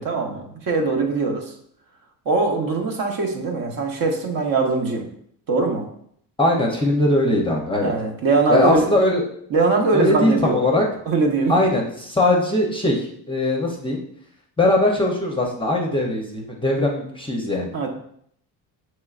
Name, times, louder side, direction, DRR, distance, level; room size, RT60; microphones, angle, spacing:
voice 1, 0.0-1.5 2.3-5.1 5.5-5.9 7.8-8.9 9.5-10.6 11.1-11.5 17.7-17.9, right 3 dB, 50° right, 2 dB, 0.9 m, -21 dB
voice 2, 6.4-7.9 8.5-9.2 9.9-10.8 11.5-14.0 14.6-17.7, left 1 dB, 15° left, -1 dB, 0.6 m, -20 dB
6.4 x 3.1 x 2.4 m, 0.68 s
cardioid pair, 135°, 41 cm